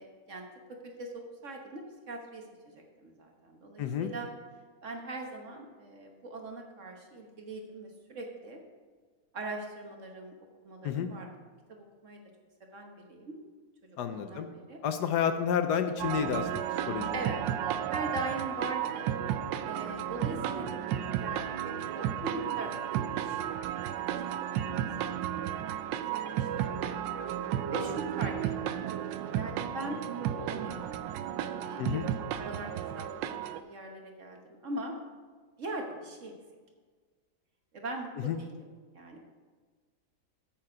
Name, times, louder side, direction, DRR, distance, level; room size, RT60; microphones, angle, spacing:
voice 1, 0.0-4.3 4.8-8.6 9.3-10.3 10.6-11.3 11.7-12.2 12.7-13.4 14.1-14.8 17.1-17.4 17.9-19.2 19.6-20.7 20.9-22.7 23.2-24.7 25.2-25.6 25.8-27.0 27.7-31.0 31.4-32.1 32.4-33.3 33.5-34.9 35.6-36.3 37.7-38.5 38.9-39.2, right 2 dB, 50° right, 2 dB, 1.3 m, -41 dB
voice 2, 3.8-4.1 10.8-11.1 14.0-14.5 14.8-16.5 16.9-17.1 31.8-32.1 38.2-38.4, left 8 dB, 75° left, 9 dB, 1.2 m, -30 dB
sound 1, 16.0-33.6, right 10 dB, 90° right, 1.3 m, -33 dB
8.9 x 7.8 x 4.8 m, 1.5 s
omnidirectional pair, 1.9 m